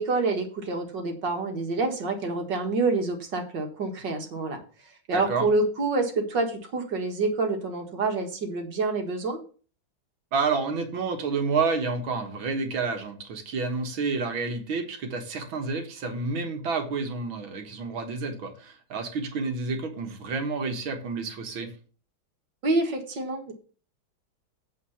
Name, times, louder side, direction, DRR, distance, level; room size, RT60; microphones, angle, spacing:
voice 1, 0.0-4.6 5.1-9.4 22.6-23.5, right 3 dB, 60° right, 4 dB, 2.2 m, -27 dB
voice 2, 5.1-5.5 10.3-21.7, right 4 dB, 75° right, 5 dB, 2.3 m, -29 dB
8.7 x 4.4 x 7.1 m, 0.39 s
omnidirectional pair, 2.2 m